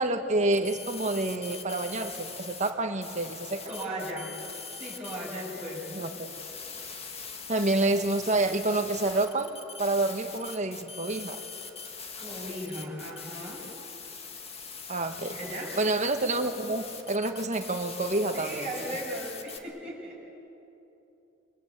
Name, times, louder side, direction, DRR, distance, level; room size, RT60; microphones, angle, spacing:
voice 1, 0.0-3.7 6.0-6.3 7.5-9.5 9.8-11.4 14.9-15.3 15.8-18.7, right 2 dB, 35° right, 6 dB, 1.5 m, -28 dB
sound 1, 0.5-2.7 3.0-19.6, left 5 dB, 30° left, 1.9 m, -42 dB
voice 2, 3.7-4.3 4.7-6.1 12.2-13.7 15.3-15.8 18.3-20.3, right 1 dB, 5° right, -7 dB, 6.3 m, -37 dB
27.0 x 24.0 x 8.2 m, 3.0 s
head